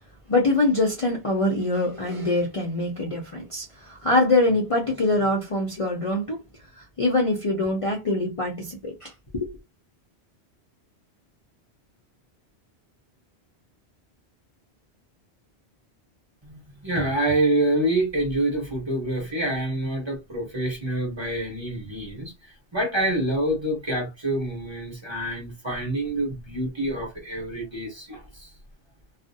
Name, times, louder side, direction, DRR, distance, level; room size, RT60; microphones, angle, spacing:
voice 1, 0.3-6.4 6.8-9.5, left 2 dB, 40° left, 0.6 m, -24 dB
voice 2, 16.5-22.3 22.7-28.5, right 1 dB, 25° right, 1.0 m, -26 dB
2.4 x 2.0 x 2.6 m
omnidirectional pair, 1.1 m